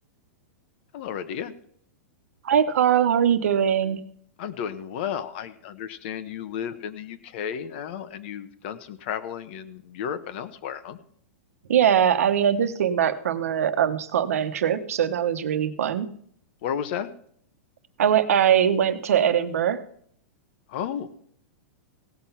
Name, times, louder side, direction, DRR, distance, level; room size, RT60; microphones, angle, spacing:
voice 1, 0.9-1.5 4.4-11.0 16.6-17.1 20.7-21.2, left 8 dB, 50° left, 13 dB, 1.0 m, -33 dB
voice 2, 2.4-4.0 11.7-16.1 18.0-19.8, right 9 dB, 85° right, 10 dB, 1.1 m, -21 dB
17.0 x 5.9 x 5.7 m, 0.63 s
supercardioid pair, 155°, 8 cm